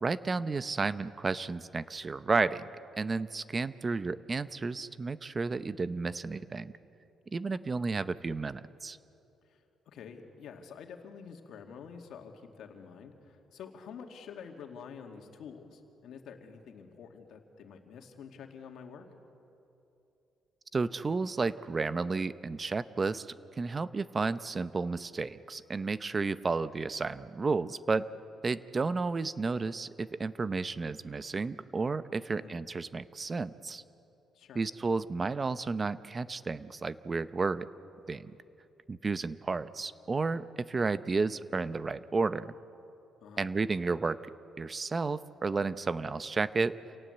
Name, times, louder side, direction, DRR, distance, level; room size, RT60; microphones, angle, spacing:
voice 1, 0.0-2.7 3.0-6.7 7.3-9.0 20.7-23.3 23.6-28.1 28.4-33.8 34.5-37.7 38.1-38.3 38.9-42.5 43.4-44.2 44.6-46.8, right 4 dB, 30° right, 15 dB, 0.7 m, -32 dB
voice 2, 9.4-19.1 32.3-32.6 34.3-34.7 43.2-43.5, left 6 dB, 75° left, 4 dB, 2.3 m, -48 dB
28.0 x 18.5 x 8.0 m, 2.9 s
cardioid pair, 90°, 0 cm